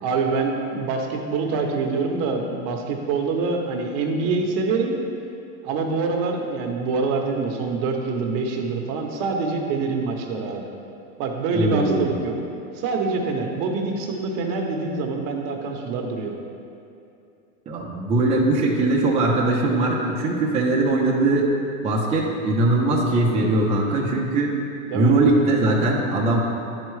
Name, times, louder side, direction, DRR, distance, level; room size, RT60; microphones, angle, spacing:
voice 1, 0.0-5.0 5.6-10.7 11.2-12.3 12.7-16.3 24.8-25.1, right 4 dB, 45° right, 2 dB, 0.8 m, -25 dB
voice 2, 11.5-12.1 17.7-21.5 21.8-24.5 24.9-26.4, right 2 dB, 15° right, -4 dB, 0.7 m, -20 dB
10.0 x 4.5 x 3.2 m, 2.7 s
supercardioid pair, 140°, 41 cm